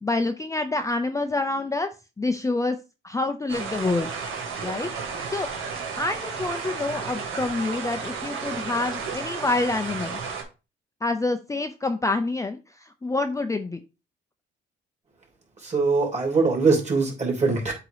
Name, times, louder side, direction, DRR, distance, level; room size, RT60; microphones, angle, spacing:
voice 1, 0.0-1.9 2.2-2.8 3.0-4.1 4.6-5.5 6.0-10.2 11.0-13.8, left 2 dB, 15° left, 7 dB, 0.5 m, -27 dB
sound 1, 3.5-10.4, right 5 dB, 90° right, 1.6 m, -33 dB
voice 2, 15.6-17.7, right 4 dB, 35° right, 0 dB, 3.0 m, -22 dB
7.8 x 2.8 x 4.9 m, 0.29 s
cardioid pair, 90°, 20 cm